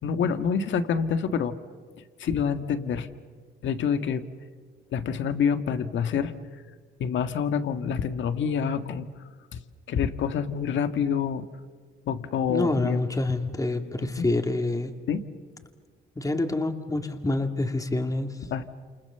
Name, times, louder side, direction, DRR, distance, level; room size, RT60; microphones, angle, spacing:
voice 1, 0.0-1.6 2.2-3.1 3.6-4.3 4.9-6.3 7.0-9.1 9.5-9.6 9.9-11.4 12.1-13.0 14.0-14.3 15.1-15.2 18.5-18.6, left 7 dB, 70° left, 9 dB, 1.8 m, -27 dB
voice 2, 12.5-14.9 16.2-18.4, left 2 dB, 15° left, 6 dB, 2.4 m, -27 dB
29.0 x 28.0 x 7.0 m, 1.5 s
cardioid pair, 90°, 20 cm